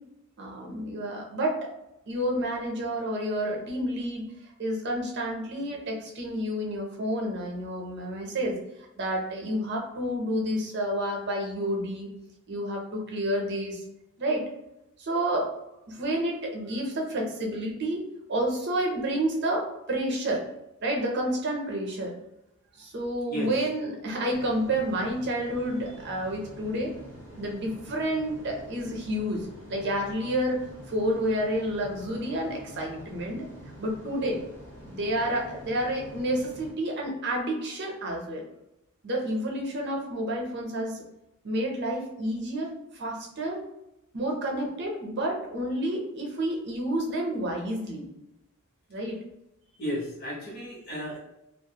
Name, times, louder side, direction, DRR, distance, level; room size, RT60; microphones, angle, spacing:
voice 1, 0.4-1.7 2.1-4.3 4.6-8.6 9.0-12.1 12.5-13.8 14.2-14.5 15.0-15.5 15.9-20.4 20.8-22.1 22.8-26.9 27.4-33.5 33.8-34.4 34.8-38.5 39.0-41.0 41.4-43.6 44.1-48.1 48.9-49.2, right 1 dB, 50° right, 0 dB, 0.6 m, -30 dB
sound 1, 24.3-36.7, equal, 10° left, 0.6 m, -47 dB
voice 2, 49.8-51.2, equal, 45° left, -5 dB, 1.0 m, -33 dB
2.5 x 2.3 x 2.8 m, 0.88 s
head